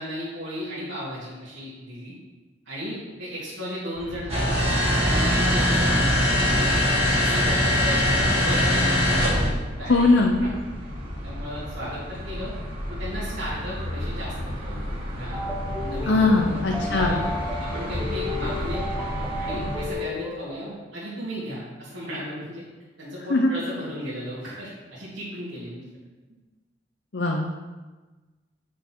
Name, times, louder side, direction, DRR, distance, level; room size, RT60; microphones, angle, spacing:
voice 1, 0.0-2.1 2.7-4.6 5.0-6.7 7.0-10.0 11.2-12.5 12.9-15.4 15.7-17.3 17.6-18.9 19.4-22.6 23.0-25.8, equal, 80° right, -10 dB, 2.7 m, -35 dB
sound 1, 3.9-19.9, equal, 50° right, 2.2 m, -33 dB
sound 2, 4.3-9.5, left 1 dB, 30° right, 1.6 m, -21 dB
voice 2, 9.9-10.4 16.1-17.2 23.3-23.5 27.1-27.7, left 3 dB, 65° left, 0 dB, 0.8 m, -20 dB
sound 3, 15.3-20.7, left 3 dB, 5° right, 1.0 m, -33 dB
8.3 x 6.2 x 4.6 m, 1.2 s
head